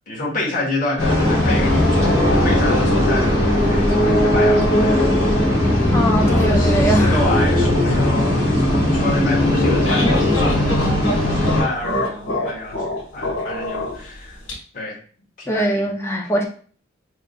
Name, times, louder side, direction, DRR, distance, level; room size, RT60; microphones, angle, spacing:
voice 1, 0.1-5.1 5.4-5.5 6.2-12.8 13.1-14.4 14.7-15.0 15.4-15.9, left 2 dB, 45° left, -4 dB, 1.1 m, -28 dB
sound 1, 1.0-11.6, left 1 dB, 65° left, 1.6 m, -18 dB
sound 2, 2.3-10.4 11.0-11.1 11.3-11.6, equal, 60° right, 1.3 m, -32 dB
voice 2, 5.9-7.2 15.5-16.5, right 1 dB, 15° left, 0 dB, 0.5 m, -21 dB
sound 3, 9.4-14.5, left 1 dB, 85° left, 1.1 m, -25 dB
3.9 x 3.5 x 2.2 m, 0.44 s
head